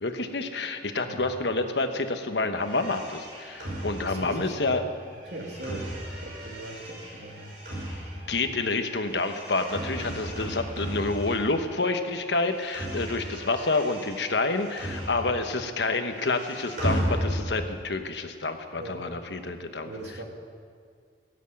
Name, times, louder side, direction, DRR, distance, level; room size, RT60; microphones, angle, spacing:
voice 1, 0.0-4.8 5.7-5.8 8.3-19.9, left 3 dB, 80° left, 7 dB, 1.2 m, -28 dB
sound 1, 2.6-11.9 12.1-15.6 15.8-17.8, equal, 50° right, 5.1 m, -35 dB
voice 2, 4.0-4.8 5.3-5.9 6.2-7.5 18.8-19.0 19.9-20.2, right 1 dB, 75° right, 0 dB, 2.5 m, -39 dB
16.5 x 8.2 x 8.9 m, 2.1 s
head